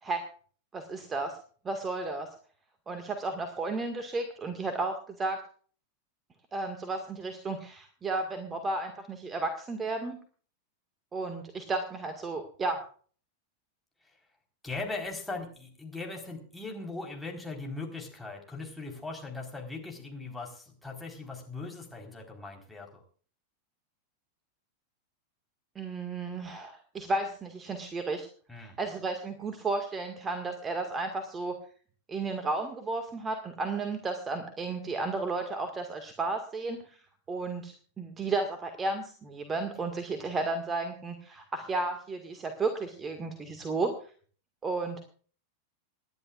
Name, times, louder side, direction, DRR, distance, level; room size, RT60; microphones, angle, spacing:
voice 1, 0.7-1.4 1.6-2.3 2.9-5.4 6.5-10.2 11.1-12.8 25.8-28.3 28.5-31.6 32.1-44.1 44.6-45.0, right 3 dB, 20° right, 6 dB, 1.8 m, -33 dB
voice 2, 14.6-23.0 28.5-28.8, left 3 dB, 5° left, 1 dB, 4.2 m, -39 dB
27.0 x 11.0 x 2.5 m, 0.44 s
figure-of-eight pair, 90°, 0 cm